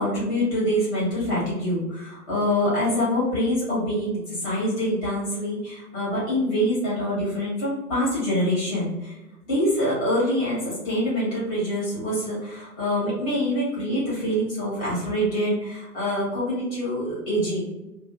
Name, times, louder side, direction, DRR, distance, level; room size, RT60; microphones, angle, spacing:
voice 1, 0.0-9.1 9.5-17.6, equal, 15° left, -7 dB, 1.1 m, -25 dB
2.5 x 2.4 x 3.7 m, 1.0 s
hypercardioid pair, 145°, 46 cm